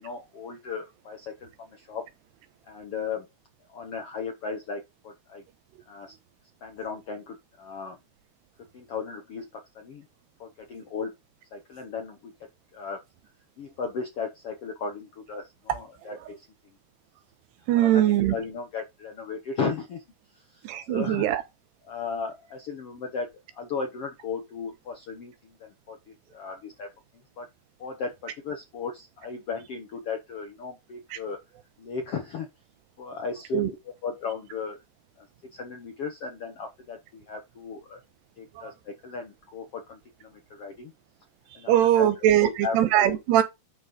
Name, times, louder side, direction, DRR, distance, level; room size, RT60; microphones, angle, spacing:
voice 1, 0.0-2.0 2.7-3.3 3.7-5.4 5.9-6.2 6.6-8.0 8.7-10.0 10.4-11.1 11.5-12.3 12.7-13.0 13.6-16.5 17.7-20.0 20.3-21.4 21.8-23.3 23.5-26.9 27.4-27.5 27.8-31.4 31.8-32.5 33.0-33.7 34.0-34.8 35.2-35.3 35.5-38.0 38.4-40.9 41.5-42.1 42.4-43.2, left 5 dB, 65° left, 1.4 m, -36 dB
voice 2, 17.7-18.4 20.6-21.4 33.5-33.7 38.6-38.7 41.7-43.4, right 12 dB, 85° right, 3.2 m, -21 dB
10.5 x 4.1 x 5.2 m
omnidirectional pair, 4.7 m